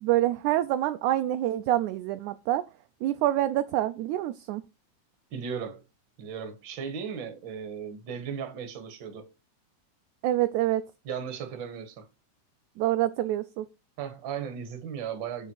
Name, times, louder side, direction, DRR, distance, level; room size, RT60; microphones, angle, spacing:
voice 1, 0.0-2.6 3.0-4.6 10.2-10.8 12.8-13.7, right 14 dB, 80° right, 1.8 m, -26 dB
voice 2, 5.3-5.8 6.2-9.3 11.0-12.0 14.0-15.5, right 7 dB, 45° right, 1.8 m, -36 dB
7.7 x 7.0 x 4.6 m
omnidirectional pair, 3.8 m